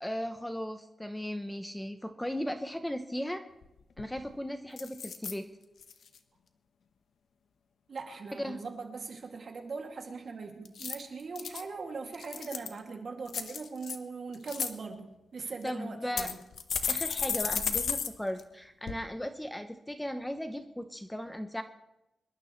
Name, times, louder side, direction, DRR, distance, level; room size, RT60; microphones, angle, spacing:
voice 1, 0.0-3.4 4.0-5.5 8.4-8.6 15.4-16.3 16.9-21.6, equal, 5° left, 7 dB, 0.7 m, -37 dB
sound 1, 3.6-3.7 4.0-4.3 4.8-5.3 5.8-6.2 10.6-11.6 12.1-12.8 13.3-14.0 14.3-14.7 15.5-15.6 16.2-18.1 18.4-18.5 18.9-19.0, left 6 dB, 70° left, 1.0 m, -33 dB
voice 2, 7.9-16.4, right 4 dB, 50° right, 2 dB, 2.3 m, -40 dB
25.5 x 12.0 x 3.2 m, 0.90 s
wide cardioid pair, 120°, 0 cm